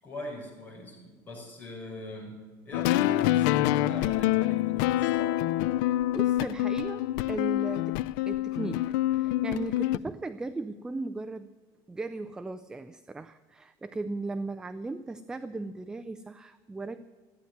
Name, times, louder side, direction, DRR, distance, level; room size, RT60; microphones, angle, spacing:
voice 1, 0.0-5.4, left 1 dB, 20° left, -2 dB, 5.4 m, -42 dB
sound 1, 2.7-10.0, left 15 dB, 80° left, 0.4 m, -26 dB
voice 2, 5.7-11.5 11.9-17.1, right 3 dB, 5° right, 10 dB, 0.3 m, -37 dB
14.0 x 9.4 x 9.4 m, 1.4 s
cardioid pair, 165°, 10 cm